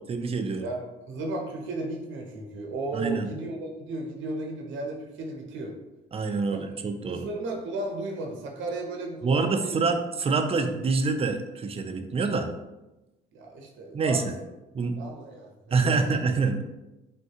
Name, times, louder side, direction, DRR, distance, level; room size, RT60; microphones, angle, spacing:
voice 1, 0.1-0.7 2.9-3.3 6.1-7.3 9.2-12.5 13.9-14.3 14.7-15.0 15.7-16.6, right 4 dB, 30° right, 6 dB, 0.4 m, -26 dB
voice 2, 0.6-5.7 6.5-6.6 7.1-9.8 13.3-14.2 14.9-16.0, right 2 dB, 75° right, 0 dB, 0.7 m, -34 dB
3.5 x 2.2 x 2.7 m, 1.0 s
cardioid pair, 90°, 20 cm